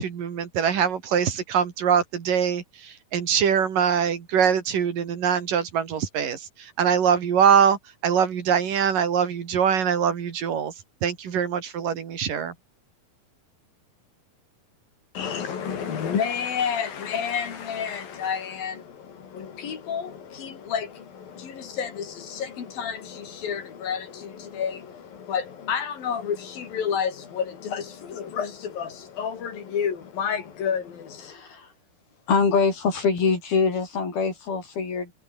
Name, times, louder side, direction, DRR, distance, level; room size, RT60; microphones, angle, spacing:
voice 1, 0.0-10.7 11.0-12.5, right 7 dB, 65° right, 4.2 m, -23 dB
voice 2, 15.1-31.3, left 7 dB, 70° left, 5.1 m, -30 dB
voice 3, 31.3-31.7 32.3-35.1, left 5 dB, 90° left, 8.0 m, -24 dB
omnidirectional pair, 4.2 m